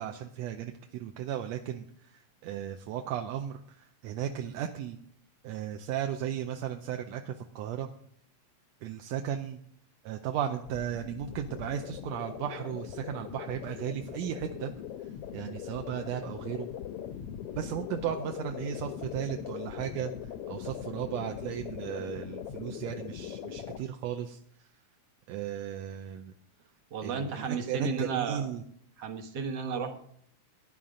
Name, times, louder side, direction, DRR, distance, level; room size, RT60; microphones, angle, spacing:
voice 1, 0.0-5.0 5.4-7.9 8.8-9.6 10.0-14.7 15.3-16.7 17.6-24.7 25.3-26.3 27.0-28.6, right 10 dB, 75° right, 5 dB, 1.8 m, -35 dB
sound 1, 10.7-23.8, left 9 dB, 80° left, 1.4 m, -41 dB
voice 2, 26.9-28.5 29.0-30.0, right 5 dB, 60° right, 5 dB, 2.2 m, -33 dB
14.5 x 10.0 x 3.8 m, 0.65 s
omnidirectional pair, 3.3 m